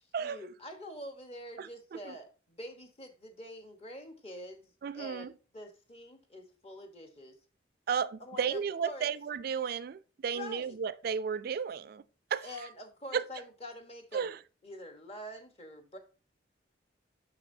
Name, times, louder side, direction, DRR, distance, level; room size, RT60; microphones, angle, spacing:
voice 1, 0.2-7.4 8.2-9.1 10.3-10.8 12.4-14.3 14.6-16.0, equal, 35° left, 1.1 m, -46 dB
voice 2, 1.6-2.1 4.8-5.3 7.9-12.0 12.3-12.5 13.1-13.2 14.1-14.4, right 6 dB, 50° right, 0.3 m, -34 dB
6.8 x 5.9 x 2.7 m
head